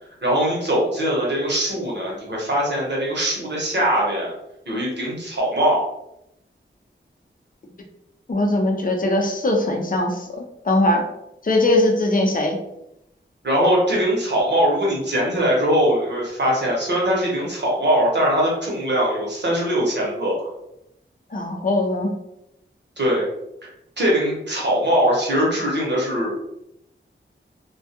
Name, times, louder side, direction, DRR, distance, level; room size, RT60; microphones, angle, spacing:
voice 1, 0.2-4.3 4.7-5.9 13.4-20.5 23.0-23.3 24.0-26.3, equal, 60° right, -4 dB, 1.0 m, -21 dB
voice 2, 8.3-11.0 11.4-12.6 21.3-22.1, left 1 dB, 40° left, 2 dB, 0.5 m, -20 dB
2.2 x 2.2 x 2.8 m, 0.83 s
wide cardioid pair, 65°, 21 cm